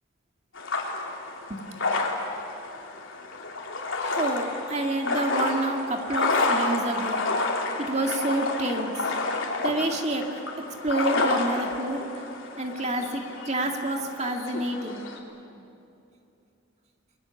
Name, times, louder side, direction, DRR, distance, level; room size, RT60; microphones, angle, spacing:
sound 1, 0.5-15.2, left 3 dB, 75° left, 3.1 m, -30 dB
voice 1, 4.0-7.3 7.8-9.1 9.6-10.3 10.7-12.2 12.6-15.1, right 1 dB, 35° right, 3 dB, 2.1 m, -28 dB
29.0 x 22.0 x 7.2 m, 2.7 s
head